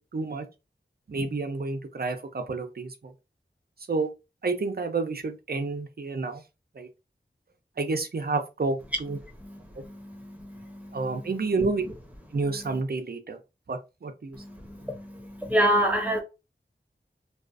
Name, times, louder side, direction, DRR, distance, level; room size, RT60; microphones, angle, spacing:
voice 1, 0.1-0.4 1.1-3.1 3.9-4.1 4.4-6.4 6.8-6.9 7.8-9.2 10.9-11.8 12.3-13.4 13.7-14.4, right 3 dB, 55° right, 0.5 m, -29 dB
voice 2, 15.4-16.2, equal, 5° right, 0.8 m, -22 dB
2.3 x 2.3 x 2.4 m
wide cardioid pair, 45°, 20 cm